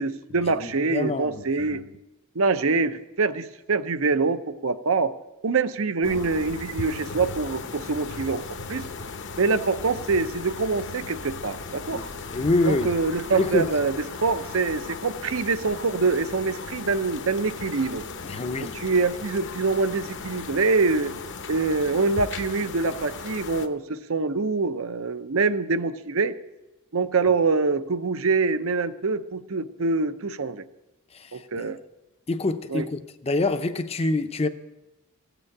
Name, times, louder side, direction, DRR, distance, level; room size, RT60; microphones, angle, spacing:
voice 1, 0.0-1.8 2.3-5.1 5.4-8.9 9.4-12.0 12.6-18.0 18.6-21.1 21.5-26.3 26.9-30.7 31.3-31.8 32.7-32.9, right 4 dB, 65° right, 0.7 m, -25 dB
voice 2, 0.6-1.8 11.9-12.9 13.4-13.7 18.2-18.8 31.1-31.7 32.3-34.5, left 2 dB, 30° left, 0.6 m, -26 dB
sound 1, 6.0-23.7, left 4 dB, 55° left, 0.9 m, -37 dB
16.0 x 6.9 x 8.7 m
head